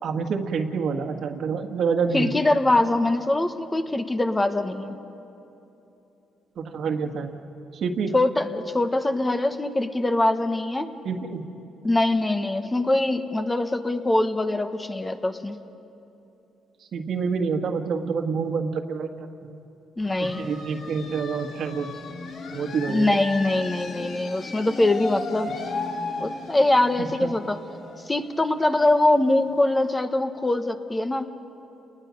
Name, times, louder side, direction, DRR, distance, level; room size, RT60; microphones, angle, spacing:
voice 1, 0.0-2.4 6.6-7.3 7.7-8.1 11.0-11.4 16.9-19.6 20.2-21.9 22.5-23.2 27.0-27.3, right 5 dB, 65° right, 5 dB, 1.7 m, -27 dB
voice 2, 2.1-5.0 8.1-10.9 11.8-15.6 20.0-20.5 22.9-25.5 26.2-27.6 28.1-31.3, left 2 dB, 20° left, 7 dB, 1.2 m, -23 dB
sound 1, 20.0-29.5, left 3 dB, 70° left, 2.1 m, -36 dB
29.5 x 20.0 x 5.3 m, 2.9 s
cardioid pair, 90°, 0 cm